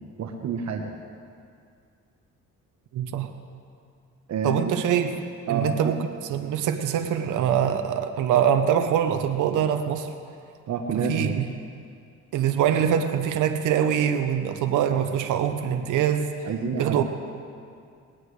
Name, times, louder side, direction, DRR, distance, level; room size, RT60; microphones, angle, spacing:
voice 1, 0.2-0.9 4.3-4.7 5.5-6.0 10.7-11.4 16.4-17.0, right 5 dB, 65° right, 3 dB, 1.2 m, -28 dB
voice 2, 2.9-3.3 4.4-5.1 5.5-6.0 6.3-10.1 10.9-11.5 12.3-16.4 16.8-17.0, right 9 dB, 85° right, 7 dB, 0.9 m, -24 dB
19.5 x 17.5 x 3.3 m, 2.4 s
cardioid pair, 90°, 30 cm